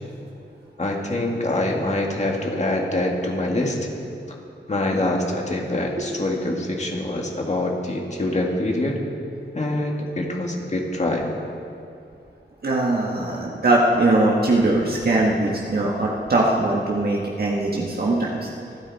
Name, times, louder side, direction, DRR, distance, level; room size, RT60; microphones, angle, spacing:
voice 1, 0.8-3.9 4.7-9.0 9.5-11.3, left 1 dB, 35° left, 0 dB, 2.2 m, -25 dB
voice 2, 12.6-18.5, right 2 dB, 55° right, -3 dB, 1.6 m, -21 dB
26.5 x 10.0 x 4.3 m, 2.5 s
wide cardioid pair, 120°, 19 cm